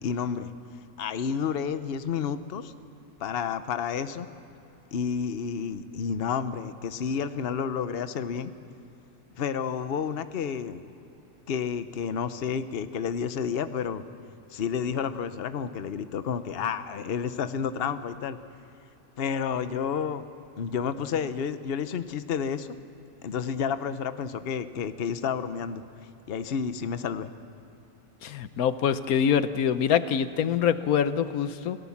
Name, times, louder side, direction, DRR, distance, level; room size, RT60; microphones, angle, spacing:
voice 1, 0.0-0.5 1.0-2.7 3.2-4.3 4.9-8.5 9.4-10.8 11.5-14.0 14.5-18.4 19.2-20.2 20.6-22.7 23.2-25.8 26.3-27.3, left 7 dB, 50° left, 11 dB, 1.0 m, -30 dB
voice 2, 28.2-31.8, left 8 dB, 85° left, 12 dB, 1.3 m, -25 dB
29.0 x 18.0 x 7.2 m, 2.8 s
omnidirectional pair, 1.5 m